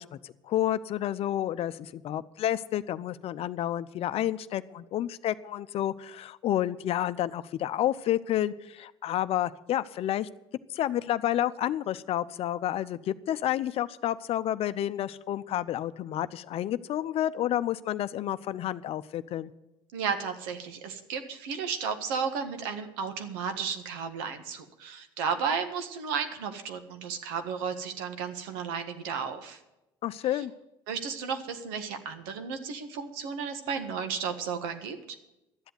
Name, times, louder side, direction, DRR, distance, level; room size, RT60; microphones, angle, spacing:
voice 1, 0.0-10.3 10.7-19.5 30.0-30.5, left 12 dB, 55° left, 14 dB, 0.7 m, -30 dB
voice 2, 19.9-29.6 30.3-30.4 30.9-35.0, right 6 dB, 85° right, 7 dB, 1.6 m, -33 dB
12.5 x 8.0 x 9.3 m, 0.94 s
supercardioid pair, 80°, 12 cm